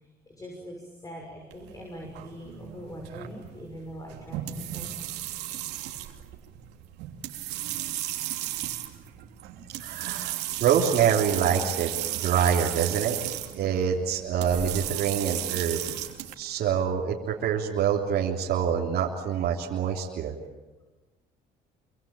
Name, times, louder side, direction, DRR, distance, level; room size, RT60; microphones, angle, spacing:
voice 1, 0.3-4.9, equal, 20° left, 1 dB, 6.4 m, -42 dB
sound 1, 1.5-16.3, right 13 dB, 90° right, 3.0 m, -35 dB
voice 2, 9.7-13.2 13.5-15.8 16.4-20.3, right 8 dB, 70° right, -2 dB, 3.3 m, -26 dB
27.0 x 25.0 x 8.9 m, 1.2 s
cardioid pair, 110°, 17 cm